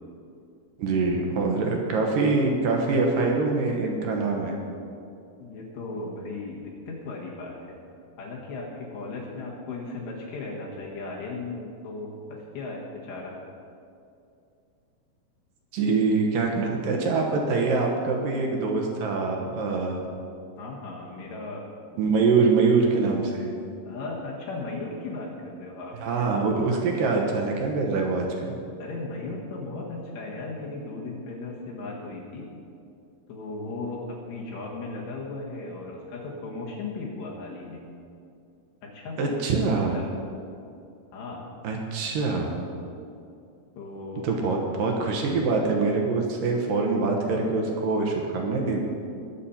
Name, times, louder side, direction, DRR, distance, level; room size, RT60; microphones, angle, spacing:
voice 1, 0.8-4.5 15.7-20.0 22.0-23.5 25.9-28.5 39.2-40.0 41.6-42.6 44.2-48.8, right 4 dB, 70° right, 1 dB, 2.3 m, -24 dB
voice 2, 5.4-7.8 8.2-13.4 20.6-21.7 23.9-26.0 28.8-32.5 33.3-37.9 38.8-39.4 39.9-40.0 41.1-41.5 43.8-44.3, left 3 dB, 75° left, -4 dB, 3.7 m, -36 dB
21.0 x 7.4 x 4.3 m, 2.5 s
omnidirectional pair, 5.1 m